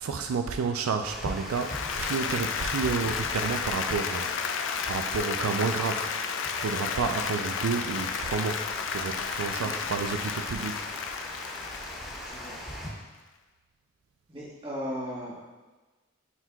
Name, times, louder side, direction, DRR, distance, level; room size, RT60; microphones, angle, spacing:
voice 1, 0.0-6.1 6.6-10.9, right 5 dB, 85° right, 6 dB, 0.4 m, -31 dB
Water, 1.0-12.9, equal, ahead, 1.6 m, -40 dB
sound 1, 1.2-9.9, left 1 dB, 80° left, 1.8 m, -49 dB
Applause, 1.5-12.8, left 6 dB, 60° left, 0.4 m, -33 dB
voice 2, 12.2-12.6 12.8-12.9 14.3-15.4, equal, 25° right, -5 dB, 1.3 m, -37 dB
9.6 x 4.6 x 2.3 m, 1.2 s
head